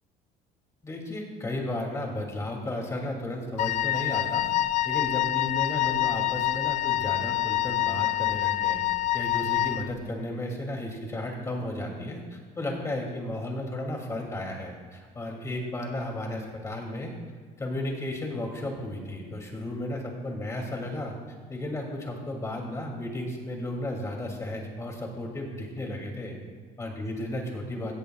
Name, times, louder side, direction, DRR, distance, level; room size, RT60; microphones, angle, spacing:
voice 1, 0.8-4.5 4.8-8.8 9.1-17.1 17.6-21.2 21.5-26.3 26.8-27.9, left 1 dB, 20° left, 1 dB, 2.6 m, -34 dB
Wind instrument woodwind instrument, 3.6-9.9, left 15 dB, 50° left, 0.4 m, -26 dB
17.5 x 14.0 x 2.4 m, 1.5 s
cardioid pair, 125°, 16 cm